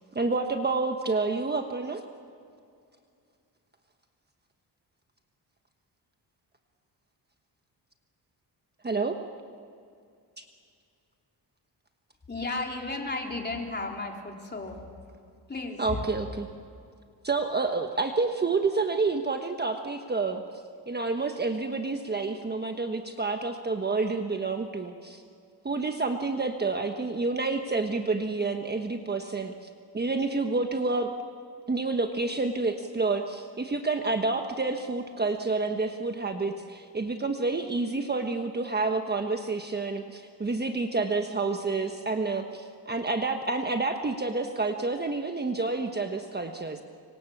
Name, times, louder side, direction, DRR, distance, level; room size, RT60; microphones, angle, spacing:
voice 1, 0.1-2.0 8.8-9.2 15.8-16.5 17.2-20.4 20.9-25.2 25.6-29.7 29.9-31.1 31.7-46.8, right 3 dB, 25° right, 5 dB, 1.3 m, -29 dB
voice 2, 12.3-14.9 15.5-16.0, left 3 dB, 25° left, 1 dB, 3.7 m, -34 dB
25.5 x 25.0 x 7.3 m, 2.4 s
cardioid pair, 120°, 41 cm